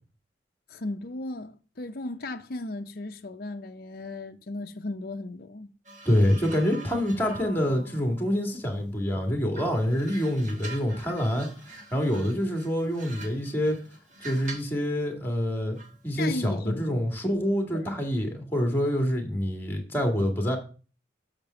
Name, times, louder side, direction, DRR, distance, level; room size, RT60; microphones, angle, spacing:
voice 1, 0.7-5.7 16.2-17.0 17.7-17.9, left 2 dB, 55° left, 0.6 m, -36 dB
sound 1, 5.8-9.1 9.5-14.8 15.8-16.0, right 2 dB, 40° right, 1.6 m, -45 dB
voice 2, 6.1-11.5 11.9-13.8 14.2-15.8 16.0-20.6, equal, 10° left, 2.1 m, -26 dB
6.6 x 5.2 x 6.9 m
head